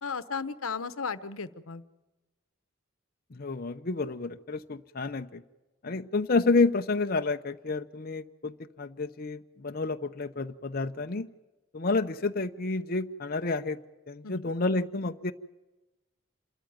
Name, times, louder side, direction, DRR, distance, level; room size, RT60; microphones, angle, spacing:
voice 1, 0.0-1.8 14.2-14.4, left 5 dB, 85° left, 13 dB, 1.0 m, -35 dB
voice 2, 3.3-5.4 5.8-11.3 11.7-13.8 14.1-15.3, left 3 dB, 45° left, 6 dB, 0.7 m, -29 dB
27.5 x 13.5 x 9.3 m, 1.1 s
head